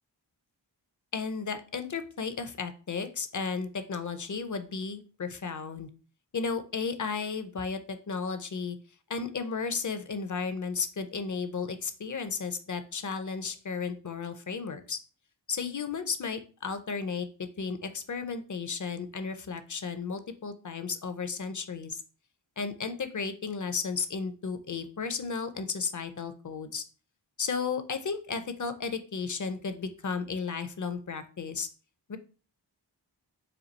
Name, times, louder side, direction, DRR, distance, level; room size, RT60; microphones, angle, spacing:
voice 1, 1.1-5.9 6.3-8.8 9.1-15.0 15.5-17.3 17.6-22.0 22.6-26.8 27.4-31.7 32.1-32.2, left 5 dB, 45° left, 9 dB, 0.6 m, -34 dB
4.4 x 2.3 x 3.9 m, 0.38 s
wide cardioid pair, 45°, 44 cm